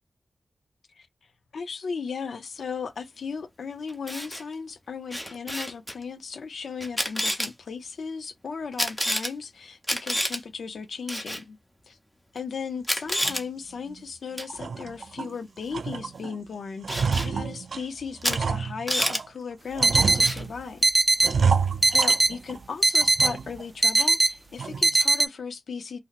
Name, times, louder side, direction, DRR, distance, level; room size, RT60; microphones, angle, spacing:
voice 1, 1.5-11.6 11.9-12.0 12.3-20.8 21.9-26.0, left 5 dB, 85° left, 0.6 m, -36 dB
Camera, 3.9-4.4 5.1-5.9 6.8-7.5 8.8-9.3 9.8-10.4 11.1-11.4 12.4-12.5 12.8-13.4 14.4-14.6 16.9-17.3 18.2-18.4 18.7-19.2 20.2-20.5, equal, 5° left, 0.8 m, -28 dB
sound 1, 13.2-13.4 13.9-14.0 14.4-15.3 15.7-16.4 16.6-19.3 19.8-20.7 21.2-22.7 23.0-23.6 24.0-24.1 24.6-25.0, right 5 dB, 85° right, 0.3 m, -29 dB
sound 2, 19.8-20.3 20.8-21.3 21.8-22.3 22.8-23.3 23.8-24.3 24.8-25.3, right 2 dB, 20° right, 0.4 m, -20 dB
2.7 x 2.1 x 3.9 m
wide cardioid pair, 85°, 0 cm